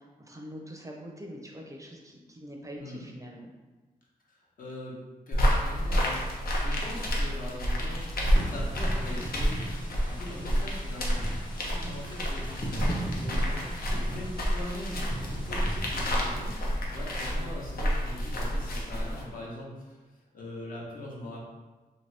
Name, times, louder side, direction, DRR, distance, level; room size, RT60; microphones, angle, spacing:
voice 1, 0.0-3.5 11.7-12.0, equal, 20° right, 0 dB, 0.5 m, -44 dB
voice 2, 4.6-5.0 5.3-6.2 6.5-16.5 16.9-20.0 20.3-21.4, left 1 dB, 65° left, -4 dB, 0.9 m, -41 dB
sound 1, 5.3-19.2, equal, 90° left, 0.6 m, -29 dB
sound 2, 8.3-16.2, right 1 dB, 30° left, 0.7 m, -39 dB
2.7 x 2.7 x 3.2 m, 1.3 s
wide cardioid pair, 85°, 15 cm